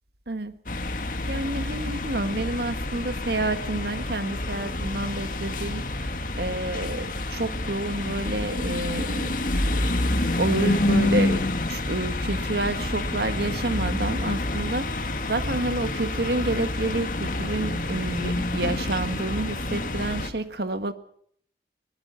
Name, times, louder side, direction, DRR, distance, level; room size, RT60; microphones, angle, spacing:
voice 1, 0.3-0.6 1.3-6.1 6.4-9.7 10.4-20.9, right 2 dB, 65° right, 10 dB, 1.7 m, -29 dB
sound 1, 0.7-20.3, left 2 dB, 50° left, 2.0 m, -28 dB
23.5 x 20.0 x 5.8 m, 0.64 s
head